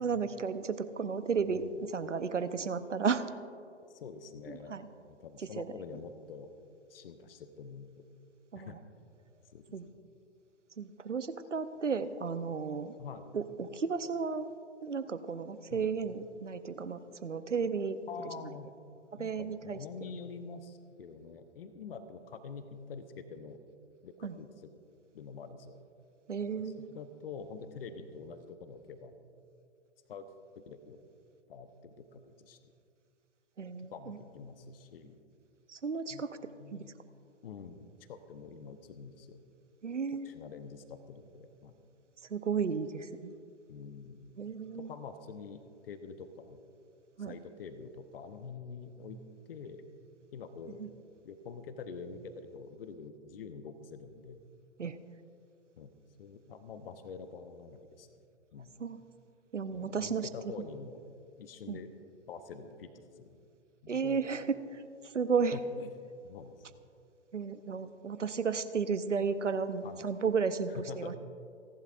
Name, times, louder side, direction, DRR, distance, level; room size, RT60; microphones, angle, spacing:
voice 1, 0.0-3.3 4.5-4.9 5.4-5.7 8.5-8.8 9.7-9.9 10.8-12.9 13.3-14.5 14.8-18.0 19.1-20.1 24.2-24.4 26.3-27.0 33.6-34.2 35.7-36.4 36.7-36.8 39.8-40.3 42.3-43.3 44.4-44.9 47.2-47.4 50.8-50.9 54.8-55.0 58.8-59.0 59.5-60.3 61.7-61.8 63.9-64.6 65.0-65.6 67.3-71.2, right 5 dB, 85° right, 12 dB, 0.8 m, -33 dB
voice 2, 1.5-1.8 3.9-4.7 5.1-6.5 6.9-8.1 8.6-8.8 9.5-9.9 13.0-13.3 15.7-15.9 18.1-18.7 19.2-23.6 24.0-24.7 25.1-25.8 26.9-29.1 30.1-30.3 30.6-31.0 31.5-32.7 33.9-35.2 36.1-36.2 36.6-36.9 37.4-39.4 40.2-41.8 43.7-46.6 47.2-49.2 49.5-49.8 50.3-50.8 51.2-54.4 55.8-58.2 58.5-58.8 59.7-61.0 61.4-61.9 62.3-63.4 63.8-64.2 65.5-65.9 66.2-66.6 69.8-70.1 70.7-71.2, left 5 dB, 50° left, 10 dB, 1.0 m, -46 dB
28.5 x 11.5 x 2.5 m, 2.4 s
figure-of-eight pair, 130°, 36 cm